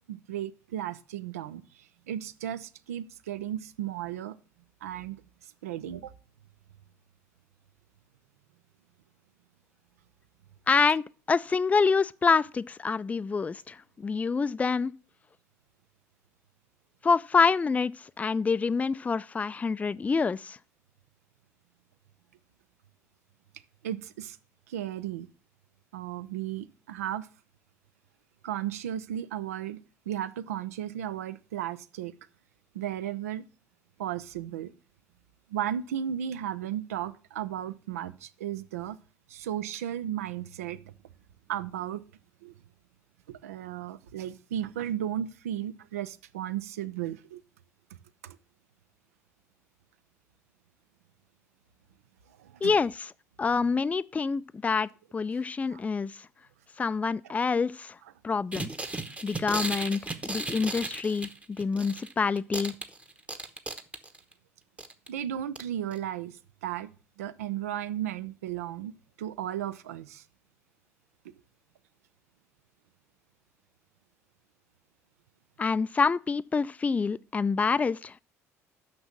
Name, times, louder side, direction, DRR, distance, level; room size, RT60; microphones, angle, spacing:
voice 1, 0.1-4.4 4.8-5.2 5.6-6.1 23.8-24.4 24.7-25.3 25.9-27.3 28.4-32.1 32.7-33.4 34.0-34.7 35.5-39.0 39.3-40.9 41.5-42.0 42.4-42.5 43.3-47.4 48.2-48.4 52.4-52.7 55.7-55.8 65.1-66.9 67.2-68.9 69.2-70.2, right 11 dB, 75° right, 0.5 m, -35 dB
voice 2, 10.7-14.9 17.0-20.6 52.6-53.1 53.4-56.2 56.8-58.0 58.2-58.7 59.2-62.7 75.6-78.2, left 5 dB, 20° left, 0.3 m, -27 dB
sound 1, 58.5-62.1 62.4-64.3 64.8-65.1 65.6-65.7 65.9-66.0, right 2 dB, 15° right, 1.0 m, -35 dB
6.2 x 6.1 x 7.2 m
figure-of-eight pair, 60°, 8 cm